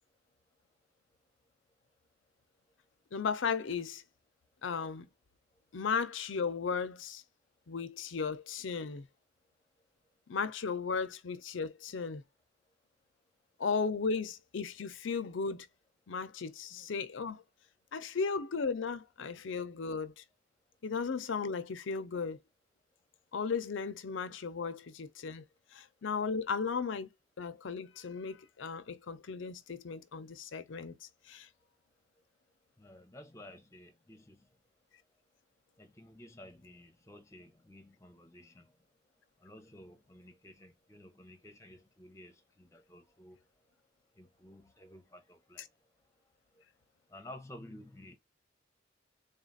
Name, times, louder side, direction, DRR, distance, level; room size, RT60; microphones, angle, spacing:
voice 1, 3.1-4.0 4.6-5.1 5.7-7.2 7.7-9.1 10.3-12.2 13.6-15.7 16.1-17.4 17.9-20.2 20.8-22.4 23.3-25.4 25.7-27.1 27.4-31.5, left 5 dB, 75° left, 0.5 m, -35 dB
voice 2, 32.8-34.5 35.8-38.7 39.4-43.4 44.2-45.6 47.1-48.2, left 1 dB, 15° left, 0.7 m, -53 dB
3.8 x 2.4 x 3.9 m
head